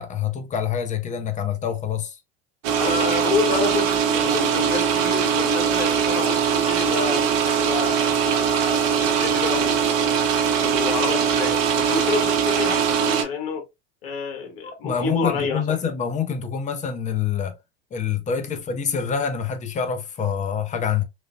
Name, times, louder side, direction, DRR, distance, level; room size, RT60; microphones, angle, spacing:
voice 1, 0.0-2.2 14.6-17.6 17.9-21.0, left 7 dB, 25° left, 0.7 m, -26 dB
sound 1, 2.6-13.2, right 7 dB, 50° right, 0.8 m, -21 dB
voice 2, 2.8-9.7 10.6-13.6 14.0-15.8, left 5 dB, 70° left, 1.1 m, -29 dB
3.1 x 2.5 x 2.4 m
hypercardioid pair, 75°, 30 cm